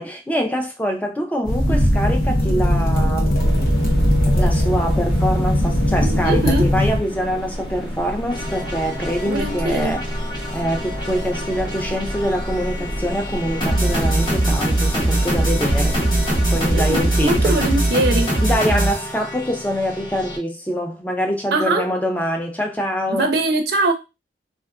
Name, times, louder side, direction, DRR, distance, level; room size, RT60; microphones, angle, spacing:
voice 1, 0.0-3.4 4.3-10.1 10.5-16.0 16.5-17.6 18.4-23.3, equal, 10° left, 0.4 m, -24 dB
sound 1, 1.5-7.0, equal, 55° left, 0.8 m, -18 dB
sound 2, 3.4-17.8, equal, 70° left, 1.1 m, -30 dB
voice 2, 6.2-6.7 9.3-9.9 16.7-18.4 21.5-21.9 23.1-23.9, right 2 dB, 60° right, 0.4 m, -21 dB
sound 3, 8.3-20.4, right 1 dB, 25° left, 0.9 m, -23 dB
3.5 x 2.3 x 2.3 m
head